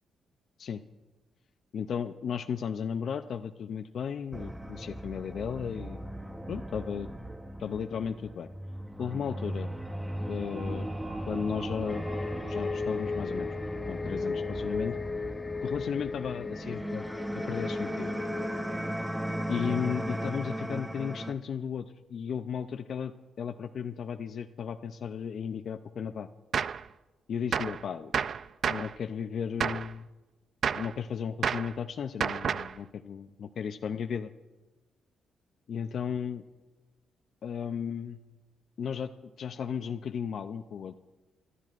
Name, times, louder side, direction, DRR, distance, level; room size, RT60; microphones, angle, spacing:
voice 1, 1.7-6.1 6.5-7.1 7.6-8.5 9.0-9.7 10.3-10.9 11.3-12.0 12.5-13.5 13.9-15.0 15.6-17.0 17.3-18.2 19.5-26.3 27.3-28.2 28.7-30.1 30.7-34.3 35.7-36.4 37.4-38.2 38.8-40.9, left 7 dB, 65° left, 8 dB, 0.5 m, -35 dB
sound 1, 4.3-21.3, right 1 dB, 10° right, 1.0 m, -37 dB
sound 2, 11.9-20.3 20.6-20.7, left 4 dB, 25° left, 0.7 m, -36 dB
Gunshot gunfire, 26.5-26.8 27.5-27.8 28.1-28.9 29.6-29.9 30.6-30.9 31.4-31.7 32.2-32.8, right 7 dB, 60° right, 0.3 m, -30 dB
24.0 x 12.5 x 2.5 m, 1.2 s
cardioid pair, 75°, 0 cm